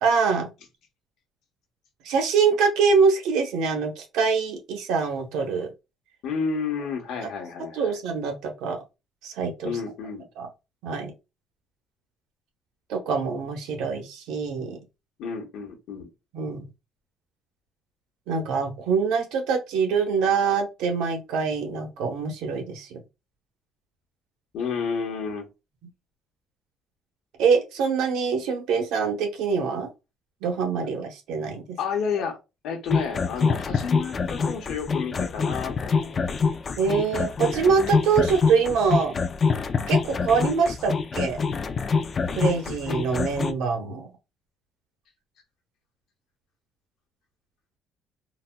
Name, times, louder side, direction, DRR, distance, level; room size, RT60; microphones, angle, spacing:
voice 1, 0.0-0.5 2.0-5.7 7.7-8.8 9.2-9.7 10.4-10.5 10.8-11.1 12.9-14.8 16.3-16.7 18.3-23.0 27.4-29.9 30.4-31.8 36.8-39.1 39.9-41.4 42.3-44.1, right 5 dB, 90° right, 0.9 m, -24 dB
voice 2, 6.2-8.0 9.6-10.3 15.2-16.1 24.5-25.5 31.8-32.4 32.6-36.2, left 5 dB, 70° left, 1.0 m, -31 dB
sound 1, 32.9-43.5, left 5 dB, 30° left, 0.3 m, -25 dB
4.0 x 2.1 x 2.2 m
cardioid pair, 150°, 0 cm